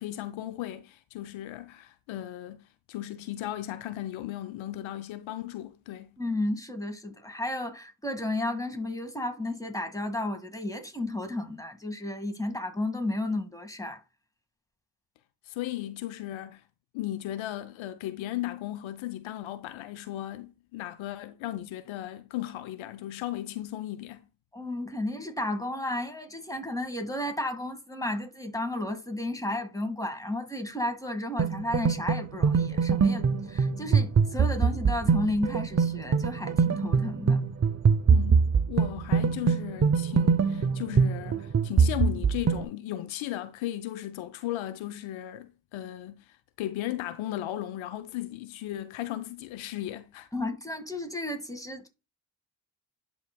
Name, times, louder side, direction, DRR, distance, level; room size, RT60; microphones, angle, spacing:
voice 1, 0.0-6.2 15.4-16.6 16.9-24.2 38.1-50.3, left 14 dB, 75° left, 0.7 m, -36 dB
voice 2, 6.2-14.0 24.5-37.4 50.3-51.9, left 1 dB, 5° left, 1.9 m, -33 dB
sound 1, 31.4-42.6, right 5 dB, 35° right, 0.7 m, -24 dB
11.5 x 4.0 x 2.2 m
supercardioid pair, 45°, 47 cm